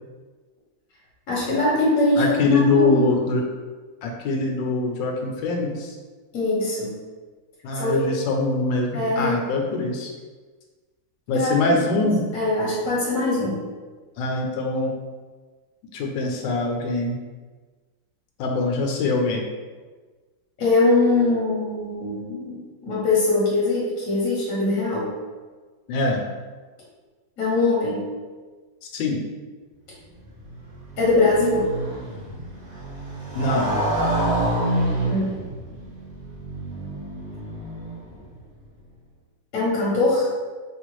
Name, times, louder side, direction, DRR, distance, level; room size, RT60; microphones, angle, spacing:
voice 1, 1.3-3.0 6.3-6.9 7.7-8.0 8.9-9.3 11.3-11.5 12.0-12.1 12.3-13.6 20.6-25.1 27.4-28.1 31.0-31.7 35.0-35.3 39.5-40.3, left 2 dB, 55° left, -6 dB, 1.1 m, -22 dB
voice 2, 2.2-3.4 4.0-6.0 7.6-8.9 9.1-10.1 11.3-12.2 14.2-14.9 15.9-17.2 18.4-19.4 25.9-26.2 28.9-29.2 33.3-33.7, left 3 dB, 80° left, 1 dB, 1.2 m, -23 dB
Motorcycle, 30.2-38.3, right 1 dB, 40° right, 1.2 m, -28 dB
3.6 x 2.4 x 3.0 m, 1.4 s
omnidirectional pair, 2.0 m